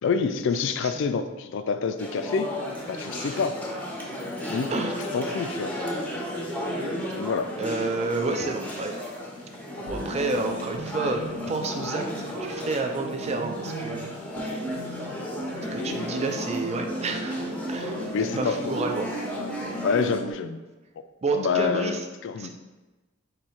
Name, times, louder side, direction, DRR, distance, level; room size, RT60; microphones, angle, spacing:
voice 1, 0.0-2.5 2.9-3.6 4.5-4.7 5.1-5.7 7.1-7.5 15.8-16.2 18.1-18.7 19.8-20.6 21.3-22.5, left 5 dB, 65° left, 10 dB, 0.3 m, -27 dB
sound 1, 2.0-20.2, equal, 10° left, 0.7 m, -34 dB
voice 2, 4.7-5.0 7.6-9.0 9.9-14.1 15.7-17.4 17.7-18.0 18.4-19.1 21.2-22.0 22.4-22.5, right 3 dB, 30° right, 4 dB, 0.4 m, -30 dB
sound 2, 9.8-20.3, right 1 dB, 50° right, 0.8 m, -35 dB
4.5 x 2.8 x 4.1 m, 1.2 s
head